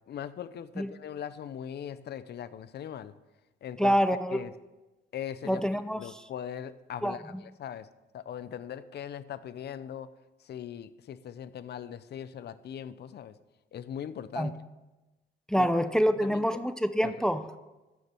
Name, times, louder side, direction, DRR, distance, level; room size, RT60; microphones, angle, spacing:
voice 1, 0.1-3.1 3.6-4.0 4.3-4.5 5.1-5.6 5.9-7.9 8.1-10.1 10.5-13.3 13.7-14.5 15.6-15.7 16.2-16.5 17.0-17.1, left 9 dB, 55° left, 15 dB, 0.6 m, -40 dB
voice 2, 3.8-4.4 5.4-6.2 7.0-7.4 14.4-14.5 15.5-17.4, equal, 5° left, 11 dB, 0.6 m, -26 dB
15.5 x 6.6 x 4.4 m, 1.1 s
cardioid pair, 90°, 20 cm